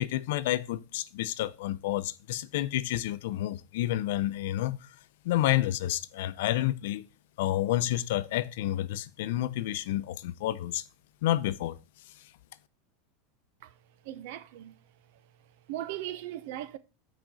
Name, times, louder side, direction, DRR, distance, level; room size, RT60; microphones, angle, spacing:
voice 1, 0.0-4.9 5.2-7.1 7.4-10.8 11.2-11.8, left 14 dB, 75° left, 0.6 m, -29 dB
voice 2, 14.1-14.7 15.7-16.8, right 13 dB, 65° right, 0.8 m, -38 dB
6.2 x 5.1 x 6.9 m
supercardioid pair, 145°, 0 cm